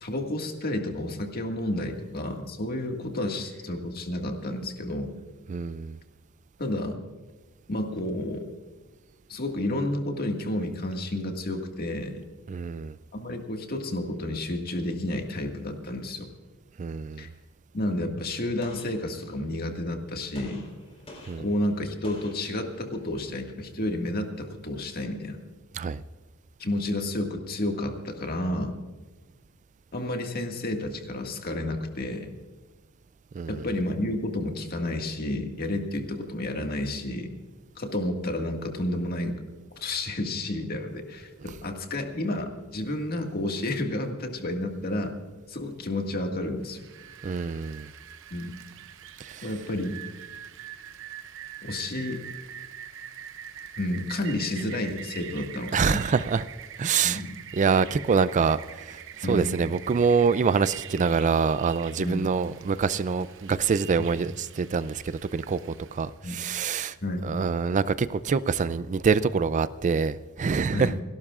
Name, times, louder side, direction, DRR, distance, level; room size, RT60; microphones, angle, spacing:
voice 1, 0.0-5.2 6.6-7.0 7.7-8.5 9.3-12.2 13.1-16.3 17.2-17.3 17.7-20.6 21.4-25.4 26.6-28.8 29.9-32.3 33.5-37.3 37.8-39.4 39.8-45.2 45.5-46.9 48.3-48.6 49.4-50.0 51.6-52.2 53.8-56.2 57.0-57.4 59.2-59.7 62.0-62.3 64.0-64.1 66.2-66.4 67.0-67.3 70.7-71.0, left 1 dB, 45° left, 3 dB, 1.9 m, -31 dB
voice 2, 5.5-6.0 12.5-12.9 16.8-17.2 21.3-21.4 25.8-26.0 33.4-33.6 47.2-47.9 49.2-49.4 55.7-56.4 56.8-57.2 57.5-59.0 59.3-65.6 65.9-66.9 67.2-70.9, right 5 dB, 35° right, 16 dB, 0.3 m, -25 dB
Gunshot gunfire, 18.6-19.7 20.3-23.1, left 1 dB, 30° left, 3.7 m, -48 dB
Rain, 46.7-66.1, right 9 dB, 65° right, 0.8 m, -44 dB
30.0 x 12.0 x 2.4 m, 1.4 s
head